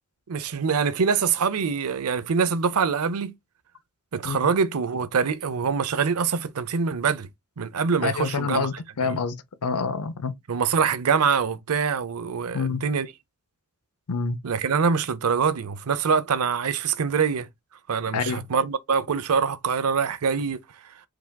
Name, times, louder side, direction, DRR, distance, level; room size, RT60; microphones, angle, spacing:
voice 1, 0.3-3.3 4.1-7.3 7.6-8.7 9.0-9.2 10.5-13.1 14.4-17.5 17.9-20.6, right 6 dB, 85° right, 0.6 m, -24 dB
voice 2, 8.0-10.4 12.5-12.8 14.1-14.4 18.1-18.4, left 5 dB, 85° left, 0.6 m, -27 dB
4.8 x 3.5 x 2.2 m
head